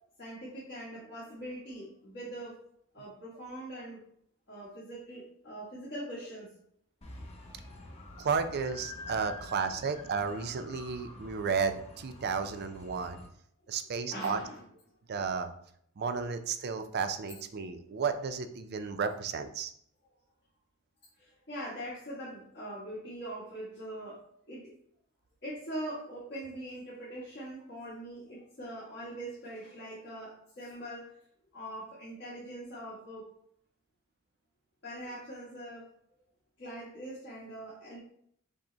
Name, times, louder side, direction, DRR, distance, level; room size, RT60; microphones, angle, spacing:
voice 1, 0.2-2.6 2.9-4.0 4.5-6.5 7.5-7.6 9.4-9.5 14.1-14.6 21.2-24.7 25.4-31.2 31.5-33.3 34.8-35.9 36.6-38.0, right 1 dB, 55° left, -8 dB, 1.5 m, -42 dB
sound 1, 7.0-13.3, left 2 dB, 30° left, 0.8 m, -48 dB
voice 2, 8.2-13.2 13.7-14.4 15.1-15.5 16.0-19.7, right 5 dB, 50° right, 9 dB, 0.4 m, -33 dB
5.9 x 2.1 x 3.9 m, 0.68 s
head